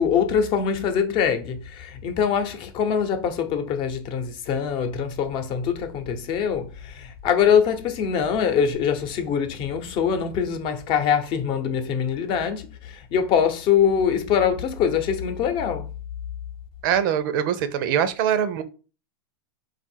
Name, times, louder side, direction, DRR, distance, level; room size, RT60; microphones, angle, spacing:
voice 1, 0.0-15.9, left 7 dB, 40° left, 0.8 m, -23 dB
voice 2, 16.8-18.6, right 9 dB, 55° right, 0.7 m, -23 dB
3.9 x 2.5 x 4.4 m
hypercardioid pair, 105°, 13 cm